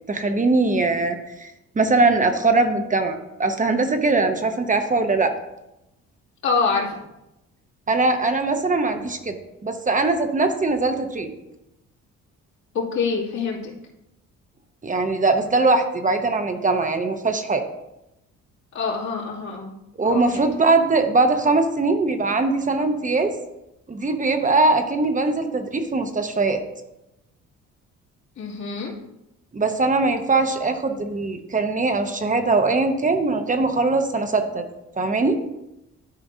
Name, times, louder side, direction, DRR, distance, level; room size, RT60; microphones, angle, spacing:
voice 1, 0.1-1.5 1.8-5.3 7.9-9.4 9.6-11.3 14.8-17.6 20.0-23.3 23.9-26.6 29.5-34.7 35.0-35.4, right 3 dB, 25° right, 6 dB, 0.8 m, -21 dB
voice 2, 6.4-7.0 12.7-13.7 18.7-19.7 20.0-20.5 28.4-28.9, left 4 dB, 70° left, -5 dB, 2.5 m, -25 dB
12.5 x 4.7 x 2.7 m, 0.91 s
cardioid pair, 90°, 30 cm